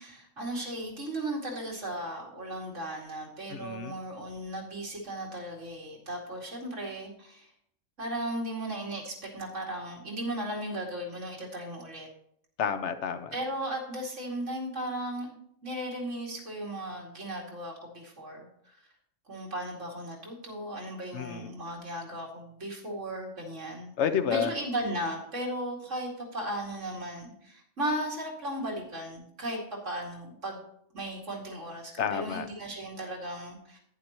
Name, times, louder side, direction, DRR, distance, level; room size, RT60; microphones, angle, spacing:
voice 1, 0.0-7.5 8.0-12.1 13.3-18.7 19.3-23.9 24.3-29.6 29.8-30.6 30.9-33.8, right 1 dB, 70° right, -2 dB, 2.8 m, -36 dB
voice 2, 3.5-3.9 12.6-13.3 21.1-21.5 24.0-24.5 32.0-32.4, left 7 dB, 65° left, 10 dB, 1.0 m, -29 dB
11.0 x 9.3 x 3.0 m, 0.71 s
omnidirectional pair, 1.3 m